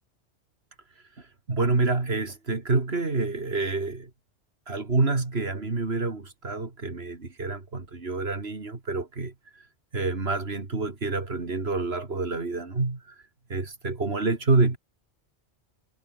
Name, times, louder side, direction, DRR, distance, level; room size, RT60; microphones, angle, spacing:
voice 1, 1.5-4.1 4.7-9.3 9.9-13.0 13.5-14.8, right 3 dB, 60° right, 3.1 m, -27 dB
omnidirectional pair, 1.2 m